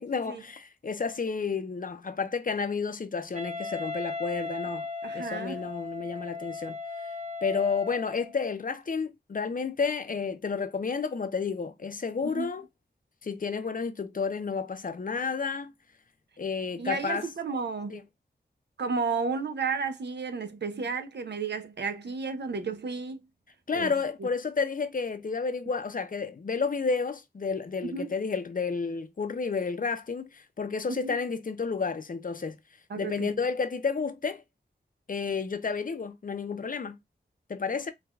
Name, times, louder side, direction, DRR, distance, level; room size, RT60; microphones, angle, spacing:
voice 1, 0.0-4.8 5.1-6.8 7.4-12.7 13.2-15.7 16.4-17.3 17.9-18.0 23.7-32.6 33.0-34.4 35.1-37.0 37.5-37.9, left 5 dB, 50° left, 0.6 m, -31 dB
Wind instrument woodwind instrument, 3.3-8.3, left 3 dB, 40° right, 0.8 m, -37 dB
voice 2, 5.0-5.6 12.2-12.5 16.8-18.0 18.8-23.2 23.7-23.9 24.2-24.3 27.8-28.1 30.9-31.2 32.9-33.4, right 4 dB, 70° right, 0.7 m, -32 dB
4.6 x 2.4 x 2.3 m
wide cardioid pair, 70°, 18 cm